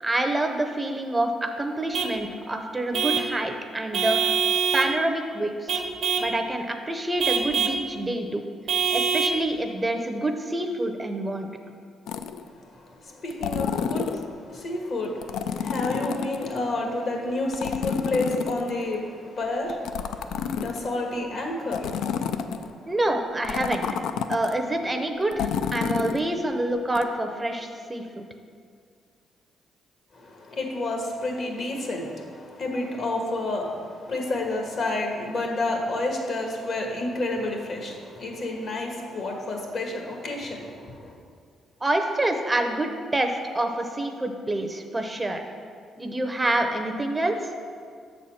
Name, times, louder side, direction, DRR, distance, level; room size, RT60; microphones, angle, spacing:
voice 1, 0.0-4.2 4.7-5.8 6.2-8.4 8.9-11.5 22.9-23.9 24.3-28.3 41.8-45.5 46.0-47.5, right 1 dB, 20° right, 5 dB, 0.6 m, -27 dB
Vehicle horn car horn honking / Truck, 1.9-2.2 2.9-3.3 3.9-5.0 5.7-6.3 7.2-7.8 8.7-9.4, right 6 dB, 70° right, 0.7 m, -24 dB
sound 1, 12.1-12.5 13.3-14.3 15.2-16.6 17.5-19.0 19.7-21.0 21.7-22.7 23.4-24.5 25.3-26.2 27.0-27.1, left 7 dB, 85° left, 0.3 m, -29 dB
voice 2, 12.4-22.9 30.1-41.2, left 2 dB, 55° left, 1 dB, 1.4 m, -30 dB
6.8 x 4.2 x 6.3 m, 2.2 s
cardioid pair, 90°, 0 cm